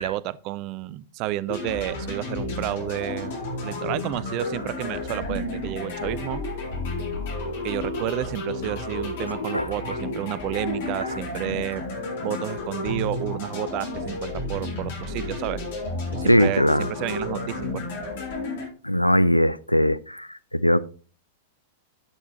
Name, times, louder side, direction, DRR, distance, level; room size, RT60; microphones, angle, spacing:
voice 1, 0.0-3.3 3.6-6.4 7.6-11.8 12.2-15.6 16.1-17.8, right 15 dB, 40° right, 0.4 m, -31 dB
sound 1, 1.5-18.7, left 2 dB, 50° left, 3.8 m, -31 dB
voice 2, 16.3-16.9 18.8-20.8, equal, 90° left, 0.4 m, -20 dB
10.5 x 8.6 x 2.8 m
figure-of-eight pair, 95°, 0 cm